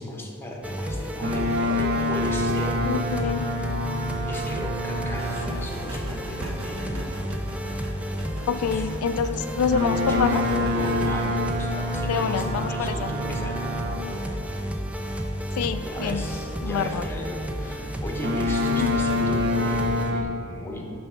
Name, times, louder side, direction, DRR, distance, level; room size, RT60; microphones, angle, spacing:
voice 1, 0.0-3.3 4.3-7.0 8.7-8.9 9.9-14.4 15.8-21.0, left 1 dB, 10° left, -1 dB, 0.8 m, -36 dB
sound 1, 0.6-20.1, equal, 5° right, 0.4 m, -32 dB
Boat Water vehicle, 1.2-5.7 9.7-14.2 18.2-20.2, left 2 dB, 50° right, 0.6 m, -27 dB
voice 2, 2.8-3.5 8.5-10.4 12.1-13.1 15.5-16.2 16.6-17.0 18.8-19.0, left 6 dB, 90° left, 10 dB, 0.3 m, -27 dB
sound 2, 5.1-11.2, right 1 dB, 75° right, 1.1 m, -39 dB
8.8 x 3.4 x 5.7 m, 2.7 s
head